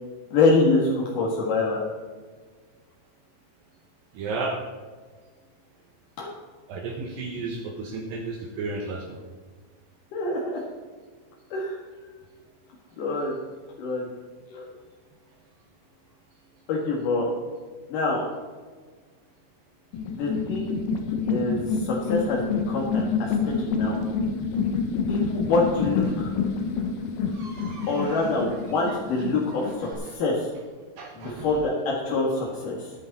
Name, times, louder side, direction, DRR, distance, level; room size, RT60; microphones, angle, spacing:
voice 1, 0.3-1.8 6.2-6.3 10.1-10.6 11.5-11.8 13.0-13.4 13.8-14.1 14.5-14.7 16.7-17.3 17.9-18.2 20.1-20.8 21.2-24.0 25.1-26.3 27.9-30.5 31.2-32.9, left 3 dB, 60° left, -3 dB, 2.4 m, -25 dB
voice 2, 4.1-4.6 6.7-9.2 27.3-28.3 28.9-29.0 29.6-30.0 31.0-31.6, right 3 dB, 90° right, 1 dB, 2.0 m, -34 dB
sound 1, 19.9-29.9, left 5 dB, 85° left, 1.9 m, -28 dB
13.5 x 10.5 x 4.1 m, 1.5 s
omnidirectional pair, 5.8 m